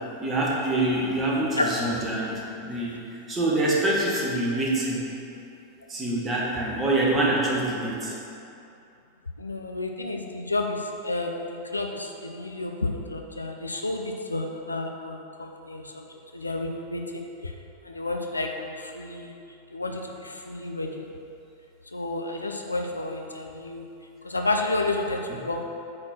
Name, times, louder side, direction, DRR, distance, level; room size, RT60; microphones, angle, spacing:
voice 1, 0.2-5.0 5.9-8.2 25.3-25.4, right 2 dB, 20° right, -4 dB, 1.8 m, -25 dB
voice 2, 9.4-16.0 16.3-17.5 17.8-19.3 19.7-21.0 21.9-23.9 24.2-25.6, left 2 dB, 80° left, 2 dB, 0.7 m, -31 dB
8.7 x 4.3 x 6.2 m, 2.7 s
figure-of-eight pair, 90°, 0 cm